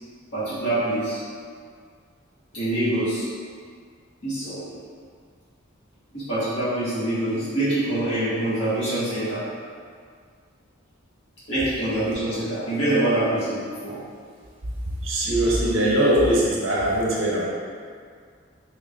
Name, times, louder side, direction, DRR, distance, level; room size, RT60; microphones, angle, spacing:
voice 1, 0.3-1.2 2.5-3.3 4.2-4.7 6.1-9.4 11.5-14.0, right 1 dB, 65° left, -13 dB, 1.4 m, -25 dB
voice 2, 15.0-17.4, right 1 dB, 75° right, -5 dB, 0.8 m, -21 dB
3.7 x 3.1 x 2.5 m, 2.1 s
head